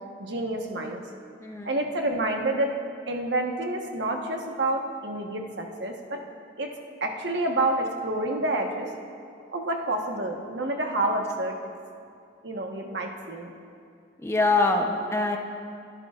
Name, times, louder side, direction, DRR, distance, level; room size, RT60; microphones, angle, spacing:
voice 1, 0.2-1.0 1.6-2.7 3.1-6.2 6.6-6.7 7.0-8.9 9.5-11.6 12.4-13.5, right 2 dB, 65° right, 2 dB, 1.2 m, -28 dB
voice 2, 1.4-1.7 14.2-15.4, left 3 dB, 15° left, 2 dB, 0.8 m, -24 dB
23.0 x 11.5 x 2.5 m, 2.3 s
head